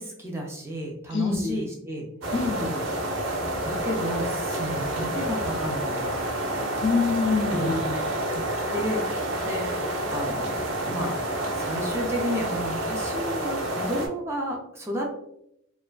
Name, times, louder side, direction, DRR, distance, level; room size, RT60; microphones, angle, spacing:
voice 1, 0.0-2.1 3.6-6.2 6.5-6.7 7.5-7.7 8.7-15.1, equal, 15° right, -1 dB, 0.3 m, -32 dB
voice 2, 1.1-1.6 2.3-2.7 6.8-7.9, left 4 dB, 60° left, 2 dB, 0.5 m, -25 dB
sound 1, 2.2-14.1, right 1 dB, 90° right, 0.6 m, -29 dB
2.5 x 2.3 x 2.2 m, 0.78 s
head